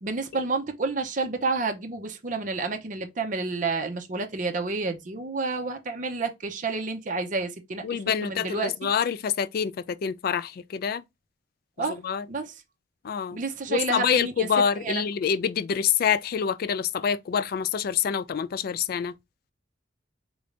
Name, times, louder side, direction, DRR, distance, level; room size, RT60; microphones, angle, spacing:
voice 1, 0.0-8.7 11.8-12.0 12.3-12.5 13.3-14.5 14.8-15.0, right 3 dB, 45° right, 0.6 m, -30 dB
voice 2, 7.8-11.0 11.9-12.3 13.0-13.4 13.7-19.1, left 7 dB, 55° left, 0.3 m, -26 dB
3.9 x 2.5 x 3.2 m
head